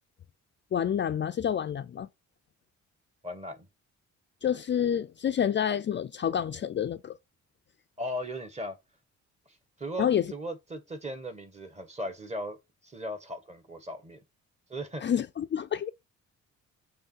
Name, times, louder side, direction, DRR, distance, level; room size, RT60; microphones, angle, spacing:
voice 1, 0.7-2.1 4.4-7.2 10.0-10.3 15.0-15.9, left 9 dB, 40° left, 0.5 m, -28 dB
voice 2, 3.2-3.6 8.0-8.8 9.8-12.6 12.8-14.2 14.7-15.0, equal, 20° right, 1.5 m, -37 dB
6.9 x 3.2 x 4.5 m
cardioid pair, 90°, 30 cm